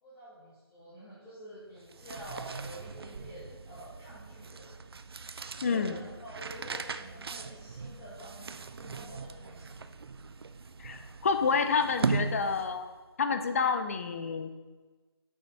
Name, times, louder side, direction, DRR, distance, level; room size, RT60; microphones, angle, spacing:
voice 1, 0.0-4.7 5.6-9.9, equal, 10° left, -12 dB, 1.4 m, -48 dB
sound 1, 1.8-13.0, right 4 dB, 65° right, 0.5 m, -39 dB
voice 2, 5.6-6.0 10.8-12.9 13.2-14.5, left 5 dB, 35° left, 8 dB, 0.6 m, -29 dB
6.7 x 5.3 x 5.4 m, 1.3 s
figure-of-eight pair, 160°, 14 cm